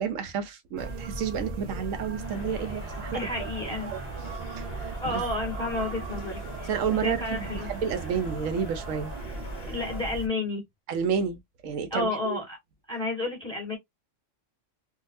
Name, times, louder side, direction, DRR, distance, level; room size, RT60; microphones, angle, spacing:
voice 1, 0.0-4.0 4.5-5.2 6.7-9.1 10.9-12.4, right 7 dB, 90° right, 1.1 m, -31 dB
sound 1, 0.8-10.3, right 2 dB, 50° right, 0.5 m, -37 dB
Crowd, 2.1-10.3, right 1 dB, 55° left, 1.2 m, -44 dB
voice 2, 3.1-3.9 5.0-6.7 7.0-7.7 9.7-10.6 11.9-12.6 12.9-13.8, left 2 dB, 5° left, 1.5 m, -31 dB
3.8 x 2.3 x 2.6 m
omnidirectional pair, 1.3 m